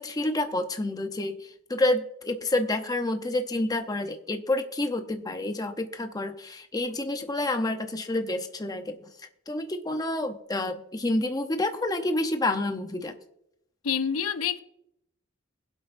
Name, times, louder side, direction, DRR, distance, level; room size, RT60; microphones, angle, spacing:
voice 1, 0.0-9.0 9.5-13.1, left 2 dB, 20° left, 0.7 m, -28 dB
voice 2, 13.8-14.6, left 7 dB, 85° left, 0.6 m, -27 dB
21.5 x 8.1 x 2.6 m
head